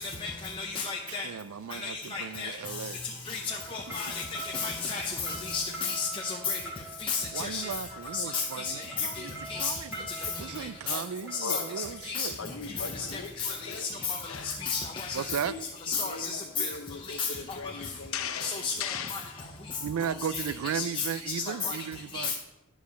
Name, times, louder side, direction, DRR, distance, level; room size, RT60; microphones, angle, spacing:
voice 1, 0.6-1.3 1.8-2.5 3.3-3.4 3.7-4.1 4.5-6.6 7.0-7.6 8.1-8.7 9.0-9.2 9.5-9.7 10.9-11.0 11.5-11.6 12.1-12.3 13.4-13.5 14.6-14.8 15.9-16.3 16.6-16.7 17.2-17.3 18.4-18.7 20.6-21.0 21.6-21.8 22.1-22.3, left 5 dB, 25° left, 0.7 m, -32 dB
voice 2, 1.1-3.0 7.3-12.4 15.1-15.5 19.8-22.4, right 7 dB, 80° right, 0.4 m, -36 dB
sound 1, 3.5-13.3, right 2 dB, 10° right, 2.2 m, -44 dB
voice 3, 11.4-11.9 12.4-14.6 14.9-19.6, left 5 dB, 75° left, 0.9 m, -39 dB
10.5 x 4.9 x 6.8 m
head